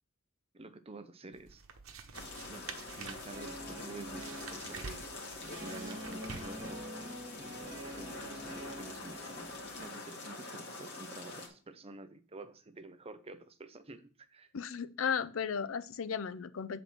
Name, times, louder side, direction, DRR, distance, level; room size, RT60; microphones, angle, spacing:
voice 1, 0.5-1.6 2.4-2.7 2.9-5.3 5.6-6.8 7.4-14.5, right 2 dB, 30° right, 0.6 m, -49 dB
Book - Handling and flipping through pages, 1.3-6.9, right 5 dB, 85° right, 1.0 m, -48 dB
FX - cascada de piedras, 2.1-11.5, left 3 dB, 55° left, 1.9 m, -45 dB
Guitar, 3.3-9.8, right 1 dB, 50° right, 1.6 m, -46 dB
voice 2, 14.5-16.8, left 7 dB, 80° left, 0.5 m, -35 dB
7.7 x 4.1 x 6.1 m
head